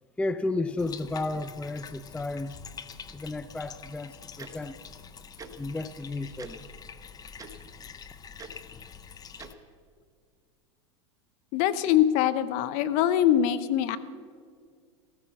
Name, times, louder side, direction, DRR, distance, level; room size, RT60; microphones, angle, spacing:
voice 1, 0.2-2.6 3.1-4.8 5.6-6.6, left 2 dB, 5° left, 13 dB, 0.4 m, -32 dB
Bathtub (filling or washing), 0.8-9.5, left 6 dB, 25° left, 0.8 m, -46 dB
Tick-tock, 4.4-4.5 5.4-5.5 6.4-6.5 7.4-7.5 8.4-8.5 9.4-9.5, right 6 dB, 20° right, 1.3 m, -43 dB
voice 2, 11.5-14.0, left 11 dB, 50° left, 13 dB, 0.9 m, -23 dB
15.0 x 14.0 x 5.8 m, 2.1 s
hypercardioid pair, 100°, 16 cm